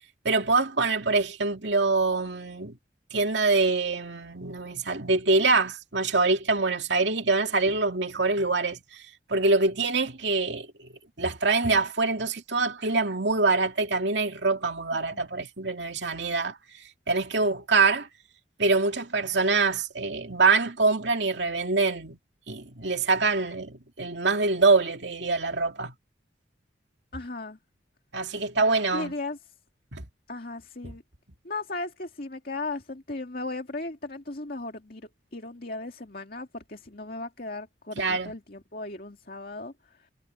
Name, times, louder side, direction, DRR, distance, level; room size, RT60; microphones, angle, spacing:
voice 1, 0.2-2.8 3.1-9.0 9.3-10.9 11.2-16.6 17.1-18.1 18.6-22.2 22.5-25.9 28.1-29.1 29.9-30.1 30.8-30.9 38.0-38.3, right 3 dB, 70° right, 2.4 m, -25 dB
voice 2, 14.9-15.2 27.1-27.6 28.9-29.5 30.3-31.0 31.4-40.1, left 2 dB, 50° left, 2.3 m, -37 dB
head